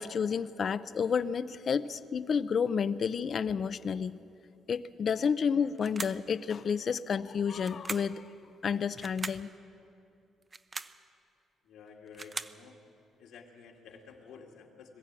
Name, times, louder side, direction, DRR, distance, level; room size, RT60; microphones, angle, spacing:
voice 1, 0.0-4.2 4.7-8.3 8.6-9.5, left 6 dB, 50° left, 14 dB, 0.5 m, -30 dB
sound 1, 5.8-6.3 7.6-8.2 9.0-9.5 10.4-11.0 11.9-12.6, right 3 dB, 30° right, 0.7 m, -40 dB
voice 2, 11.6-12.8 13.2-15.0, left 5 dB, 85° left, -1 dB, 2.3 m, -51 dB
21.0 x 14.5 x 8.9 m, 2.6 s
cardioid pair, 90°, 0 cm